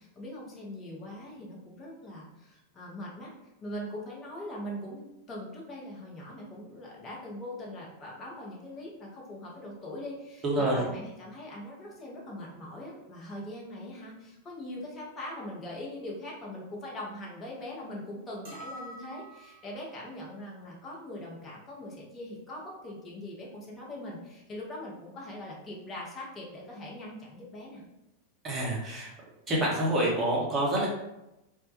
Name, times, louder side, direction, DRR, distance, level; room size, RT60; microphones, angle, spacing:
voice 1, 0.0-27.8, left 1 dB, 25° left, -3 dB, 0.7 m, -41 dB
voice 2, 10.4-10.9 28.4-29.1 29.5-30.9, right 1 dB, 20° right, -4 dB, 0.8 m, -27 dB
sound 1, 18.4-19.8, right 1 dB, 55° right, 0.8 m, -45 dB
2.1 x 2.1 x 2.8 m, 0.93 s
figure-of-eight pair, 90°, 0 cm